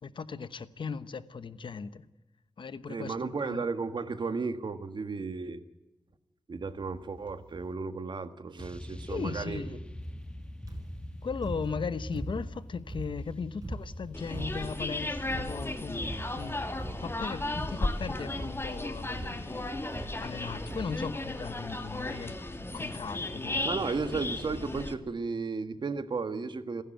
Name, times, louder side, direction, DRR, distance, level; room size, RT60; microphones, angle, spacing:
voice 1, 0.0-2.0 2.6-3.6 9.1-9.8 11.2-16.6 17.0-23.7, left 5 dB, 80° left, 1.0 m, -38 dB
voice 2, 2.9-5.6 6.5-9.6 23.6-26.8, right 4 dB, 65° right, 1.5 m, -34 dB
sound 1, 6.5-7.7 8.6-22.3, left 1 dB, 15° left, 1.2 m, -45 dB
sound 2, 10.7-11.1 11.4-12.6 12.9-14.8 15.3-15.7 16.0-16.4 16.8-17.2 17.5-18.0 18.3-18.8 19.1-19.4 19.9-20.4 20.7-21.1 21.8-21.9 22.1-22.2, right 1 dB, 45° right, 5.3 m, -41 dB
sound 3, 14.1-24.9, left 2 dB, 30° left, 2.2 m, -35 dB
28.5 x 11.0 x 9.0 m
cardioid pair, 60°, 8 cm